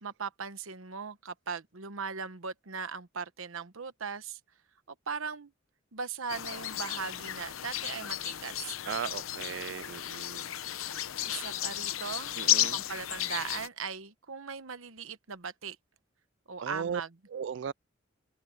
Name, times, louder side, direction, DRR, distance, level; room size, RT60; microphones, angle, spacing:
voice 1, 0.0-4.4 5.1-5.5 5.9-8.8 11.2-12.4 12.7-15.8 16.5-17.1, right 5 dB, 80° right, 1.1 m, -39 dB
sound 1, 6.3-13.7, left 13 dB, 85° left, 0.8 m, -33 dB
voice 2, 8.9-10.5 12.4-12.8 16.6-17.0 17.3-17.7, right 7 dB, 60° right, 0.3 m, -36 dB
head